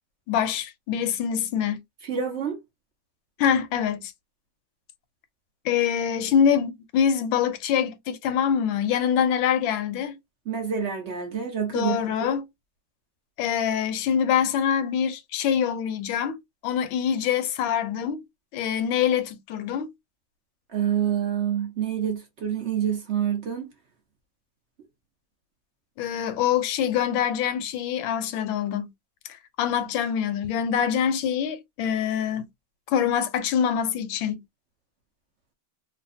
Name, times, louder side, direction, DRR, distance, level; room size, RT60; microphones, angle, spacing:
voice 1, 0.3-1.8 3.4-4.1 5.6-10.2 11.7-12.5 13.4-16.4 16.6-18.2 18.5-19.9 26.0-28.9 29.3-32.5 32.9-34.4, left 8 dB, 85° left, 1.3 m, -25 dB
voice 2, 2.1-2.6 10.5-12.3 20.7-23.7, right 8 dB, 75° right, 0.6 m, -27 dB
3.2 x 2.3 x 2.6 m
omnidirectional pair, 2.1 m